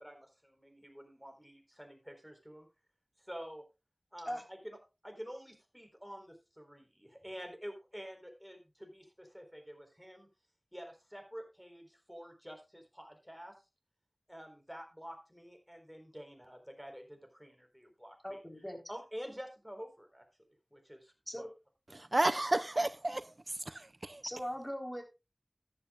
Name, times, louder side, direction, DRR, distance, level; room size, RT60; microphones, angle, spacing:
voice 1, 0.0-2.7 3.3-3.6 4.1-4.8 5.0-10.3 10.7-13.6 14.3-18.4 18.9-20.2 20.7-21.5, equal, ahead, 4.1 m, -48 dB
voice 2, 18.2-18.8 21.3-21.5 24.2-25.0, equal, 15° left, 3.8 m, -39 dB
voice 3, 21.9-24.2, right 2 dB, 60° right, 0.5 m, -32 dB
14.0 x 11.0 x 2.4 m
wide cardioid pair, 40°, 0 cm